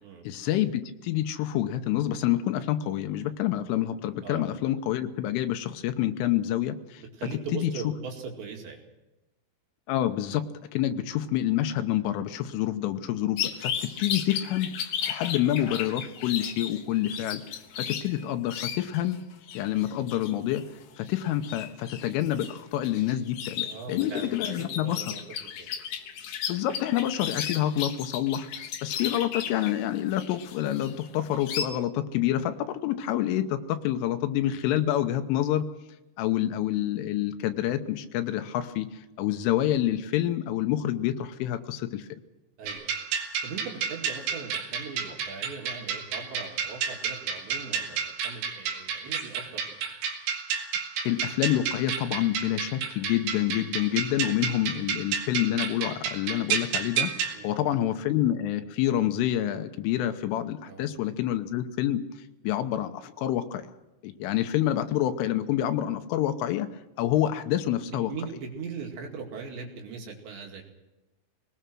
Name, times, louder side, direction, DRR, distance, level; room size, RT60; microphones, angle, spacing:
voice 1, 0.3-7.0 7.5-7.7 9.9-10.5 10.7-13.7 14.0-14.7 15.1-17.4 17.8-19.2 19.6-20.6 21.0-25.1 26.5-28.5 28.8-35.7 36.2-38.9 39.2-42.1 51.1-62.0 62.4-63.6 64.0-66.7 67.0-68.1, left 12 dB, 85° left, 8 dB, 3.5 m, -27 dB
voice 2, 7.2-8.8 23.6-25.7 42.6-42.9 43.4-49.6 54.4-54.5 57.3-57.5 60.6-60.9 67.9-70.6, right 5 dB, 65° right, 1 dB, 4.4 m, -40 dB
sound 1, 13.4-19.1 19.4-31.6, left 8 dB, 65° left, 2.6 m, -35 dB
sound 2, 42.7-57.4, right 7 dB, 85° right, 4.8 m, -31 dB
22.5 x 19.5 x 6.2 m, 1.0 s
omnidirectional pair, 5.6 m